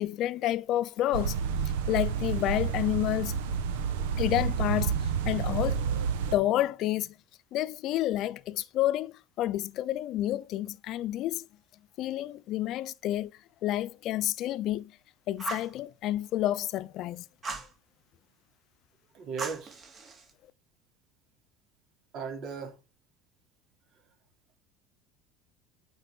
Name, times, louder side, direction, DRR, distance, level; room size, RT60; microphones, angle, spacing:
voice 1, 0.0-1.4 1.9-3.4 4.2-5.9 6.3-7.1 7.5-11.4 12.0-13.3 13.6-14.9 15.3-17.2, left 14 dB, 55° left, 0.7 m, -29 dB
sound 1, 1.1-6.4, right 6 dB, 80° right, 1.3 m, -29 dB
Fire, 15.4-15.7 17.4-17.7 19.4-20.3, right 3 dB, 35° right, 3.0 m, -37 dB
voice 2, 19.1-19.8 22.1-22.8 23.9-24.0, right 6 dB, 55° right, 3.8 m, -37 dB
9.1 x 5.5 x 7.1 m
supercardioid pair, 90°, 0 cm